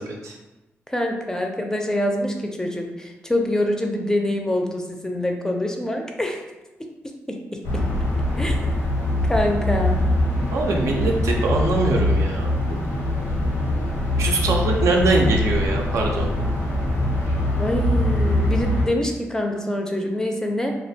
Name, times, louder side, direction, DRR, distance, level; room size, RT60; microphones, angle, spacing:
voice 1, 0.9-6.4 7.3-7.8 8.4-8.9 9.3-10.0 17.6-20.7, left 1 dB, 10° left, 2 dB, 0.4 m, -25 dB
sound 1, 7.6-18.8, left 1 dB, 90° left, 0.8 m, -23 dB
voice 2, 10.5-12.9 14.2-16.3, right 3 dB, 80° right, 0 dB, 0.4 m, -23 dB
2.3 x 2.1 x 2.7 m, 1.1 s
cardioid pair, 65°, 5 cm